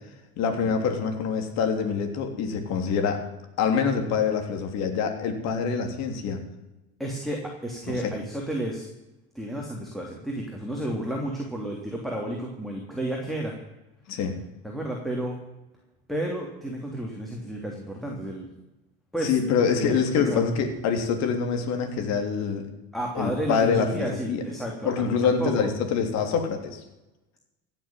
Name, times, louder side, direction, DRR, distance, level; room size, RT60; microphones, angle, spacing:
voice 1, 0.4-3.2 3.6-6.4 7.9-8.1 14.1-14.3 19.2-22.7 23.1-24.4 24.8-26.8, left 6 dB, 55° left, 5 dB, 3.3 m, -25 dB
voice 2, 7.0-8.9 9.3-13.6 14.6-15.4 16.1-18.5 19.1-19.4 19.8-20.6 22.9-25.7, right 1 dB, ahead, -1 dB, 3.1 m, -32 dB
16.0 x 7.4 x 9.2 m, 0.98 s
supercardioid pair, 95°, 31 cm